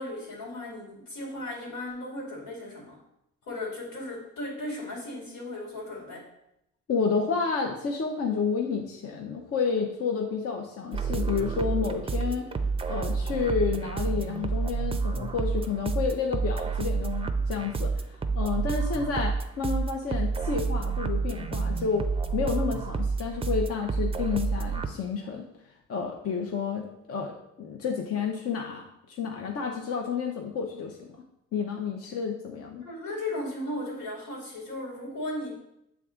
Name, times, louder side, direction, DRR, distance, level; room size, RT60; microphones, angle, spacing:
voice 1, 0.0-3.0 3.5-6.3 32.8-35.6, left 1 dB, 90° left, -3 dB, 2.4 m, -36 dB
voice 2, 6.9-12.5 12.9-18.0 18.4-25.5 25.9-31.1 31.5-32.9, left 5 dB, 50° left, 1 dB, 0.8 m, -30 dB
sound 1, 10.9-24.9, right 4 dB, 20° right, 0.5 m, -29 dB
7.4 x 3.5 x 3.7 m, 0.82 s
cardioid pair, 90°, 30 cm